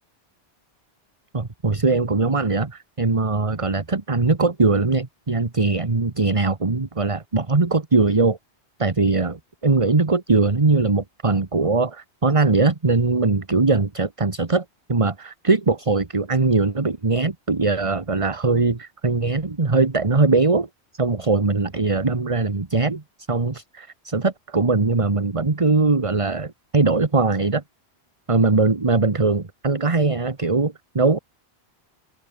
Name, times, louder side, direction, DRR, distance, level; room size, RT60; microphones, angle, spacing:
voice 1, 1.3-8.4 8.8-20.7 20.9-23.0 23.3-27.6 28.3-31.2, right 3 dB, 30° right, 1.4 m, -21 dB
open air
omnidirectional pair, 1.1 m